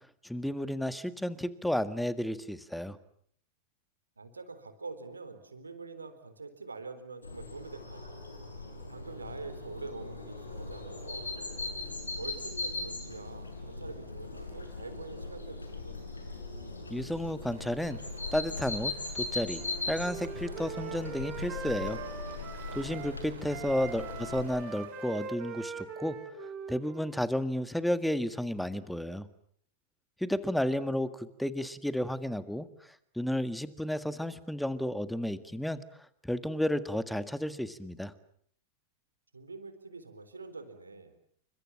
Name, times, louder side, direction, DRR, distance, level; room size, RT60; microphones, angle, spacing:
voice 1, 0.2-3.0 16.9-18.0 18.3-22.0 22.7-26.2 26.7-29.3 30.2-32.7 33.2-35.8 36.2-38.1, left 1 dB, ahead, 13 dB, 1.8 m, -32 dB
voice 2, 4.2-8.3 8.9-11.3 12.2-16.1 23.9-24.4 39.3-41.1, right 3 dB, 75° right, 10 dB, 3.9 m, -45 dB
sound 1, 7.2-24.5, left 3 dB, 80° left, 6.0 m, -39 dB
sound 2, 17.5-25.3, right 10 dB, 60° right, 2.9 m, -53 dB
Wind instrument woodwind instrument, 19.6-23.1 23.5-27.2, right 4 dB, 30° right, 5.0 m, -42 dB
29.5 x 25.0 x 7.3 m, 0.63 s
figure-of-eight pair, 90°, 0 cm